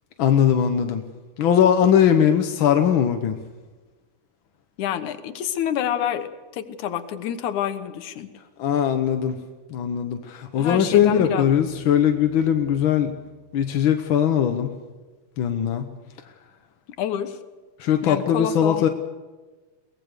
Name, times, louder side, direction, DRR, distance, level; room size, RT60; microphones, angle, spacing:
voice 1, 0.2-1.0 1.4-3.3 8.6-9.4 9.7-13.1 13.5-14.7 15.4-15.8 17.8-18.9, left 9 dB, 60° left, 6 dB, 1.4 m, -20 dB
voice 2, 4.8-8.3 10.6-11.7 17.0-17.4 18.0-18.9, left 10 dB, 85° left, 10 dB, 2.6 m, -28 dB
Guitar, 10.7-13.9, right 3 dB, 60° right, 3.6 m, -43 dB
23.5 x 19.0 x 6.7 m, 1.3 s
omnidirectional pair, 3.4 m